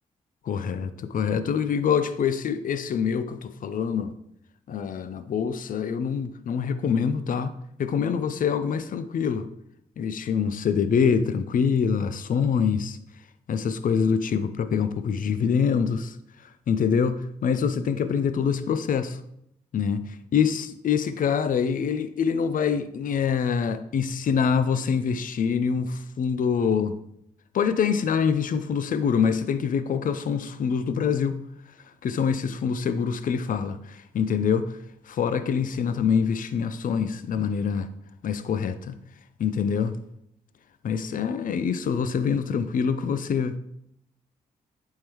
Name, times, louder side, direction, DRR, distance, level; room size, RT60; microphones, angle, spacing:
voice 1, 0.5-4.1 4.7-7.5 7.8-9.5 10.0-13.0 13.5-16.2 16.7-19.2 19.7-27.0 27.5-31.4 32.0-34.7 35.1-37.9 38.2-39.0 39.4-39.9 40.8-43.6, left 6 dB, 55° left, 0.5 m, -25 dB
8.5 x 3.7 x 3.0 m
hypercardioid pair, 40°, 17 cm